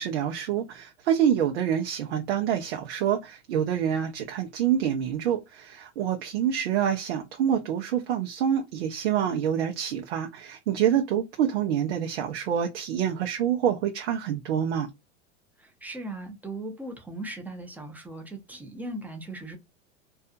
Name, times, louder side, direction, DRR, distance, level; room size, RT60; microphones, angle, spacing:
voice 1, 0.0-14.9, right 9 dB, 75° right, 0.6 m, -27 dB
voice 2, 15.6-19.6, right 2 dB, 5° right, 0.6 m, -38 dB
2.6 x 2.3 x 2.5 m
hypercardioid pair, 105°, 33 cm